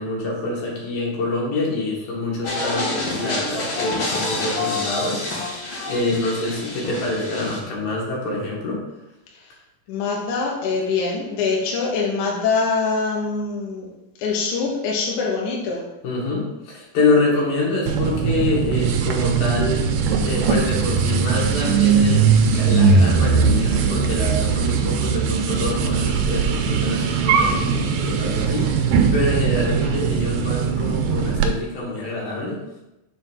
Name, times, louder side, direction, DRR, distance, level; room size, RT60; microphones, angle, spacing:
voice 1, 0.0-5.2 5.9-8.8 16.0-19.9 20.2-32.6, left 2 dB, 85° left, -3 dB, 3.4 m, -26 dB
sound 1, 2.4-7.6, left 2 dB, 50° left, 1.6 m, -27 dB
voice 2, 9.9-13.9 14.2-15.8, left 4 dB, 70° left, -2 dB, 2.4 m, -24 dB
sound 2, 17.9-31.5, right 5 dB, 90° right, 2.3 m, -20 dB
6.9 x 3.4 x 6.1 m, 0.95 s
omnidirectional pair, 3.8 m